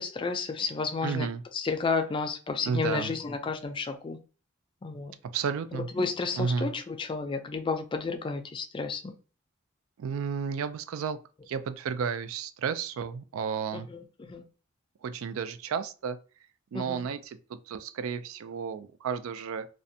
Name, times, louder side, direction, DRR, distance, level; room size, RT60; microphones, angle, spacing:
voice 1, 0.0-1.3 1.5-4.2 4.8-5.1 5.7-9.1 13.7-14.4 16.7-17.1, left 4 dB, 25° left, 0.3 m, -32 dB
voice 2, 1.0-1.4 2.6-3.1 5.3-5.9 6.4-6.7 10.0-11.2 11.5-13.9 15.0-16.2 16.7-19.7, right 6 dB, 90° right, 0.3 m, -32 dB
2.5 x 2.1 x 2.6 m
head